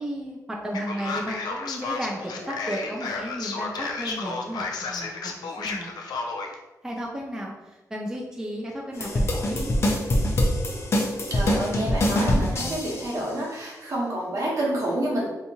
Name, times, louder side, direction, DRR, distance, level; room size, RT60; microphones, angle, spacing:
voice 1, 0.0-5.9 6.8-9.7, equal, 10° right, -2 dB, 0.4 m, -34 dB
Male speech man speaking, 0.7-6.5, left 4 dB, 85° left, 0.4 m, -32 dB
sound 1, 9.0-13.1, left 1 dB, 40° left, 0.6 m, -24 dB
voice 2, 11.3-15.3, right 1 dB, 55° right, -4 dB, 1.0 m, -28 dB
3.4 x 2.8 x 2.7 m, 1.1 s
wide cardioid pair, 125°, 7 cm